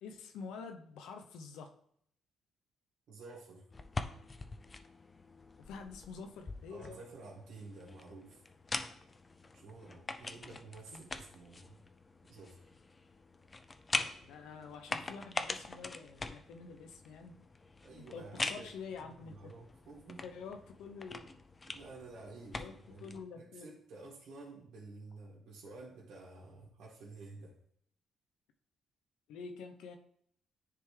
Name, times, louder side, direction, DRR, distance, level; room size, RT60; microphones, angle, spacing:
voice 1, 0.0-1.7 5.7-7.0 10.4-10.6 10.9-11.0 14.2-17.3 18.0-19.5 20.2-21.4 22.5-22.7 23.0-23.7 29.3-30.0, left 5 dB, 85° left, 6 dB, 0.7 m, -47 dB
voice 2, 3.1-3.6 6.7-8.4 9.5-11.8 12.3-12.6 17.8-18.7 19.0-20.2 21.7-27.6, right 3 dB, 70° right, -5 dB, 1.7 m, -51 dB
sound 1, 3.7-23.2, left 3 dB, 25° left, 0.5 m, -43 dB
9.9 x 3.5 x 3.3 m, 0.67 s
cardioid pair, 90°, 0 cm